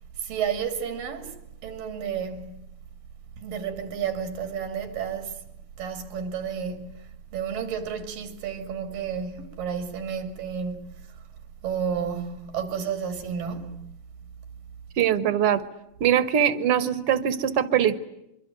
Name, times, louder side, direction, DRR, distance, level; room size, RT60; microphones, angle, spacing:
voice 1, 0.2-1.4 1.6-2.6 3.4-5.4 5.8-11.2 11.6-14.0, right 7 dB, 90° right, 4.3 m, -31 dB
voice 2, 15.0-15.6 16.0-18.0, right 9 dB, 60° right, 1.7 m, -22 dB
25.0 x 24.5 x 9.3 m
omnidirectional pair, 3.8 m